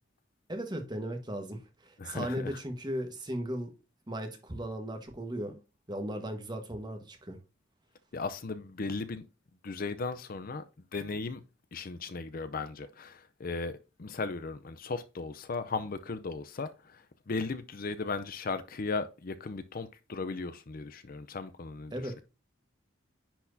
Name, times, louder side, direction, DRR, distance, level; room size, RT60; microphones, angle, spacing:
voice 1, 0.5-3.7 4.1-5.6 5.9-7.4 21.9-22.2, equal, 20° right, 1.3 m, -37 dB
voice 2, 2.0-2.5 8.1-9.2 9.6-10.6 10.9-11.4 11.7-21.9, left 3 dB, 45° left, 0.5 m, -36 dB
10.0 x 4.3 x 2.7 m
head